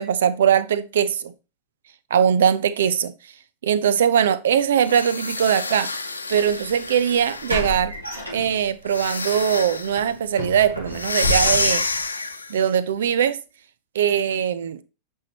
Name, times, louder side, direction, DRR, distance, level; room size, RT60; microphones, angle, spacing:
voice 1, 0.0-1.3 2.1-3.1 3.6-5.9 6.3-7.9 8.3-11.9 12.5-13.4 13.9-14.8, right 8 dB, 60° right, 0.7 m, -21 dB
sound 1, 4.8-7.8 8.9-10.0 10.9-12.6, left 3 dB, 80° left, 0.9 m, -27 dB
sound 2, 6.4-6.5 7.5-8.9 9.3-9.5 10.0-12.1, left 1 dB, 85° right, 2.4 m, -30 dB
9.0 x 5.7 x 4.1 m
figure-of-eight pair, 90°, 0 cm